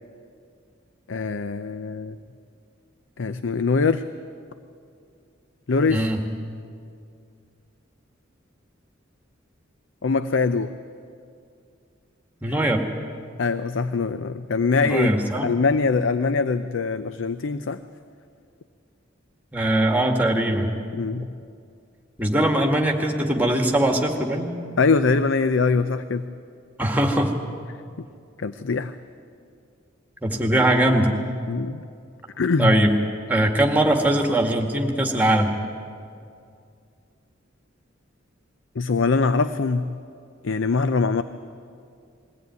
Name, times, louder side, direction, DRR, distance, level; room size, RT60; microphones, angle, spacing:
voice 1, 1.1-2.2 3.2-4.0 5.7-6.1 10.0-10.7 13.4-17.8 20.9-21.3 24.8-26.3 28.4-28.9 31.5-31.8 32.4-32.7 38.8-39.9 40.4-41.2, left 4 dB, 70° left, 11 dB, 0.6 m, -23 dB
voice 2, 5.9-6.2 12.4-12.8 14.8-15.5 19.5-20.7 22.2-24.5 26.8-27.3 30.2-31.2 32.6-32.9 33.3-35.5, right 1 dB, 10° right, 2 dB, 1.9 m, -21 dB
22.0 x 16.5 x 9.4 m, 2.4 s
head